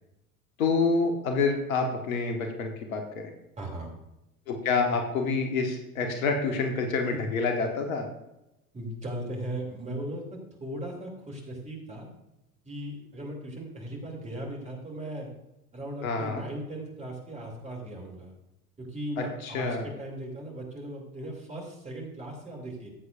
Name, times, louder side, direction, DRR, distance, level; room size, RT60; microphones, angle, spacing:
voice 1, 0.6-3.3 4.5-8.1 16.0-16.4 19.2-19.9, left 4 dB, 60° left, 4 dB, 1.5 m, -28 dB
voice 2, 3.6-3.9 8.7-10.2 10.6-12.1 12.6-15.3 15.7-18.3 18.8-22.9, right 1 dB, 15° right, -1 dB, 3.0 m, -37 dB
14.5 x 8.0 x 2.6 m, 0.91 s
figure-of-eight pair, 75°, 46 cm